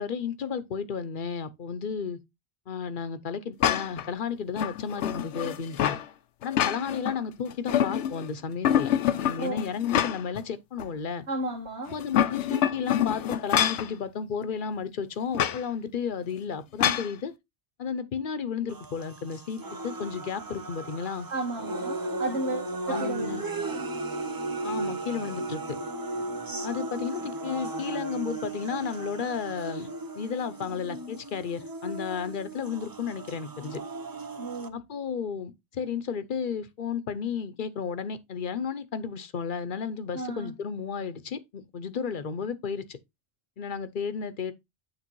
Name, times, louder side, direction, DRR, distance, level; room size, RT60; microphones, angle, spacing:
voice 1, 0.0-2.2 2.7-6.0 6.4-8.9 9.2-11.2 11.9-17.3 17.8-21.3 22.9-23.4 24.6-25.8 26.6-33.8 34.7-43.0 43.6-44.5, left 6 dB, 50° left, 0.9 m, -33 dB
sound 1, 3.6-4.1 4.6-6.0 6.4-7.2 7.5-8.3 8.6-10.4 10.8-10.9 11.9-13.9 15.3-15.6 16.8-17.1, left 10 dB, 85° left, 1.0 m, -26 dB
voice 2, 11.3-12.0 21.3-23.8 34.4-34.8 40.1-40.5, right 2 dB, 80° right, 2.0 m, -34 dB
sound 2, 18.7-34.7, right 2 dB, 25° right, 0.6 m, -36 dB
9.6 x 3.4 x 4.6 m
omnidirectional pair, 1.1 m